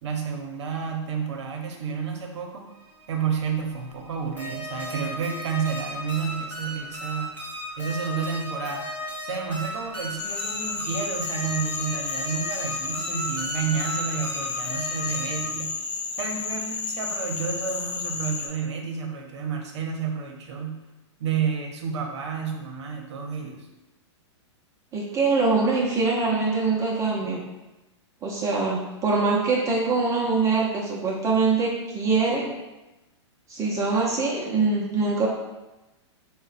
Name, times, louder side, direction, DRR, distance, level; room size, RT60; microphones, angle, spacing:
voice 1, 0.0-2.6 3.1-7.3 7.8-8.9 9.2-15.7 16.2-20.8 21.2-23.7, right 6 dB, 65° right, 3 dB, 0.8 m, -30 dB
sound 1, 2.8-15.5, equal, 10° left, 0.8 m, -36 dB
Frog, 10.2-18.5, left 5 dB, 75° left, 0.6 m, -32 dB
voice 2, 24.9-27.5 28.2-32.5 33.5-35.3, right 4 dB, 20° right, -3 dB, 0.5 m, -23 dB
3.7 x 2.1 x 4.0 m, 1.0 s
hypercardioid pair, 135°, 15 cm